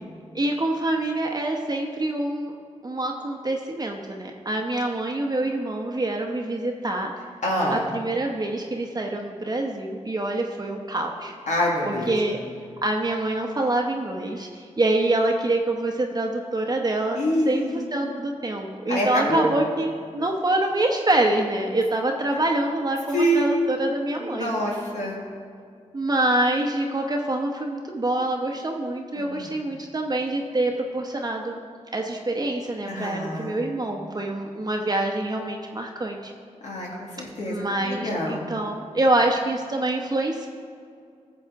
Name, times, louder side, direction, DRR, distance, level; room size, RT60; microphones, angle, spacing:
voice 1, 0.3-2.5 2.8-7.1 7.7-11.3 11.8-12.4 12.8-17.2 17.5-24.5 25.9-31.6 31.9-36.3 37.5-40.5, right 2 dB, 35° right, 2 dB, 0.8 m, -26 dB
voice 2, 7.4-7.8 11.5-12.1 17.2-17.9 18.9-19.4 23.1-23.5 24.2-25.2 29.2-29.5 32.9-33.6 36.6-38.5, equal, 75° left, -3 dB, 1.6 m, -26 dB
12.5 x 7.1 x 3.5 m, 2.3 s
cardioid pair, 55°, 12 cm